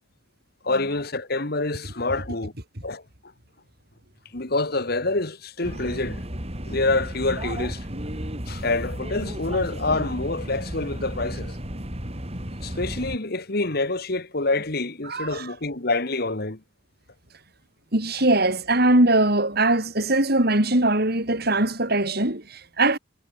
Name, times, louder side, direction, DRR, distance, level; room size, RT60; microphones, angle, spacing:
voice 1, 0.6-2.5 2.8-3.0 4.3-6.2 6.6-7.8 8.5-11.5 12.6-16.6, left 2 dB, 55° left, 2.2 m, -26 dB
sound 1, 5.6-13.2, equal, 35° right, 5.5 m, -33 dB
voice 2, 15.1-15.5 17.9-23.0, right 2 dB, 55° right, 6.2 m, -21 dB
head